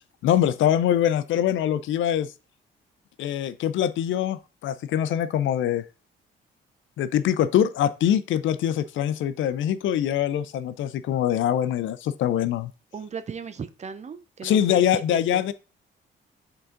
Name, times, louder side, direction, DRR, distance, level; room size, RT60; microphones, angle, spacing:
voice 1, 0.2-2.3 3.2-5.8 7.0-12.7 14.4-15.5, left 10 dB, 75° left, 0.5 m, -23 dB
voice 2, 12.9-15.4, right 6 dB, 35° right, 0.7 m, -37 dB
6.8 x 3.9 x 3.7 m
cardioid pair, 90°, 20 cm